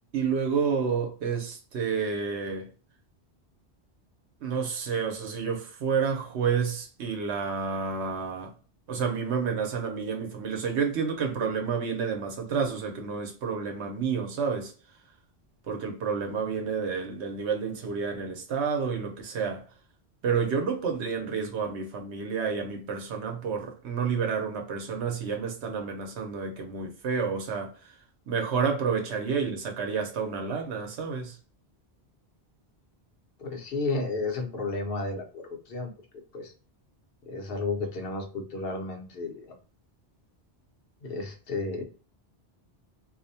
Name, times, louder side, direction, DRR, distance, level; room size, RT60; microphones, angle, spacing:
voice 1, 0.1-2.7 4.4-8.5 8.9-14.7 15.7-19.6 20.2-28.0 28.3-31.4, right 6 dB, 90° right, 1.0 m, -30 dB
voice 2, 33.4-36.5 37.3-39.6 41.0-41.8, left 3 dB, 65° left, 0.9 m, -33 dB
2.6 x 2.1 x 2.6 m
omnidirectional pair, 1.1 m